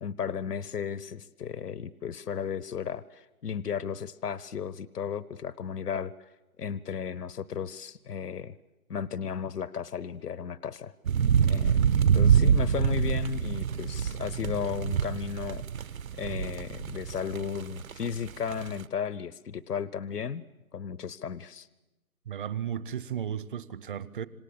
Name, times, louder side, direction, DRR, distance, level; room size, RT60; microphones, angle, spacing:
voice 1, 0.0-6.1 6.6-8.5 8.9-10.9 11.5-11.9 12.1-15.6 16.2-20.4 20.7-21.7, left 7 dB, 85° left, 18 dB, 0.9 m, -34 dB
sound 1, 11.1-18.8, right 8 dB, 60° right, 1.3 m, -26 dB
voice 2, 22.3-24.3, right 9 dB, 35° right, 18 dB, 0.9 m, -34 dB
27.0 x 26.0 x 8.4 m, 1.0 s
figure-of-eight pair, 150°, 45 cm